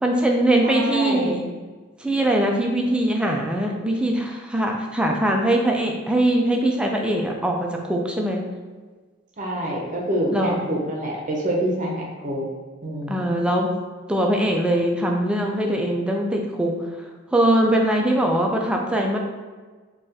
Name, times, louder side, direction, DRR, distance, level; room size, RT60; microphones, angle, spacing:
voice 1, 0.0-1.4 2.0-8.4 10.3-10.7 13.1-13.7 14.1-16.7 17.3-19.2, right 1 dB, 5° right, 0 dB, 0.3 m, -21 dB
voice 2, 0.6-1.4 9.4-12.4 12.8-13.4, right 1 dB, 40° right, -2 dB, 0.7 m, -26 dB
4.0 x 2.3 x 2.6 m, 1.4 s
head